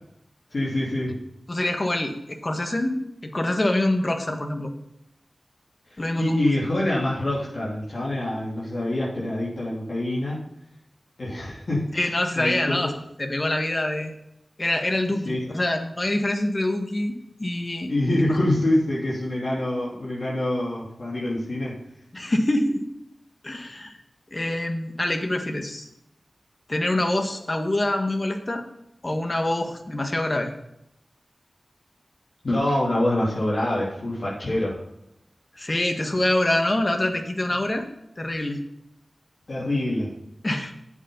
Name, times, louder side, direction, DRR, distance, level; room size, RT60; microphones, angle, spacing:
voice 1, 0.5-1.2 5.9-10.5 11.2-12.8 15.2-15.5 17.9-21.8 32.4-34.8 39.5-40.1, left 1 dB, 65° left, -6 dB, 2.9 m, -25 dB
voice 2, 1.5-4.7 6.0-6.4 11.9-12.9 13.2-14.1 14.6-17.9 22.1-22.9 23.4-24.0 24.3-25.9 26.7-28.6 29.0-30.5 35.6-37.9 38.2-38.6 40.4-40.7, left 1 dB, 40° left, 5 dB, 1.7 m, -25 dB
8.3 x 8.2 x 5.4 m, 0.81 s
cardioid pair, 45°, 0 cm